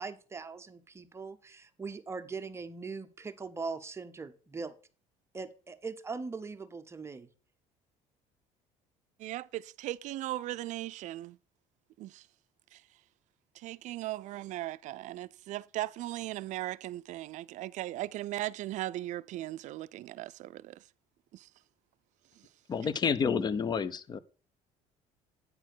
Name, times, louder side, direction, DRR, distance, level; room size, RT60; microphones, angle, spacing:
voice 1, 0.0-4.7 5.3-7.3, right 4 dB, 20° right, 0.7 m, -40 dB
voice 2, 9.2-11.4 12.0-12.3 12.7-12.8 13.6-20.8 21.3-21.5 22.4-22.5, right 15 dB, 55° right, 0.4 m, -38 dB
voice 3, 22.7-24.2, left 6 dB, 30° left, 0.6 m, -29 dB
9.1 x 4.4 x 6.1 m
cardioid pair, 125°, 15 cm